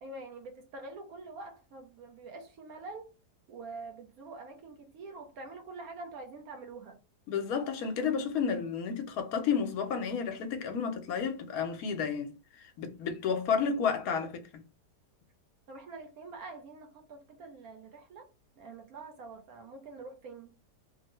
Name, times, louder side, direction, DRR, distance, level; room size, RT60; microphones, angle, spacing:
voice 1, 0.0-3.1 3.5-7.0 15.7-18.3 18.6-20.5, right 3 dB, 65° right, 1.1 m, -46 dB
voice 2, 7.3-14.6, left 6 dB, 70° left, 1.0 m, -31 dB
3.2 x 2.2 x 2.9 m
omnidirectional pair, 1.7 m